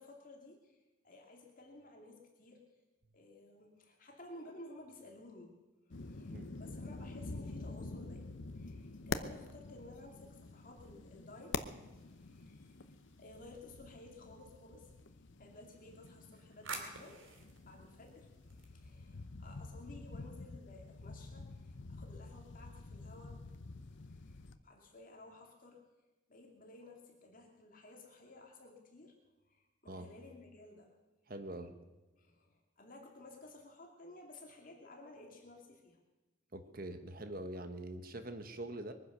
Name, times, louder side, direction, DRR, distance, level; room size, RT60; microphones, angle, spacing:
voice 1, 0.0-2.6 3.1-5.6 6.0-11.5 11.9-12.8 13.2-14.9 15.4-17.2 17.6-18.3 18.6-23.4 24.1-25.8 26.3-29.1 29.5-30.9 32.2-36.0, left 2 dB, 45° left, 0 dB, 2.5 m, -55 dB
sound 1, 5.9-24.6, left 3 dB, 65° left, 0.7 m, -47 dB
sound 2, 11.9-13.6 15.9-19.2, right 4 dB, 85° right, 2.6 m, -51 dB
voice 2, 31.3-31.7 36.5-38.9, right 1 dB, 45° right, 9 dB, 1.2 m, -44 dB
22.0 x 9.9 x 6.8 m, 1.1 s
head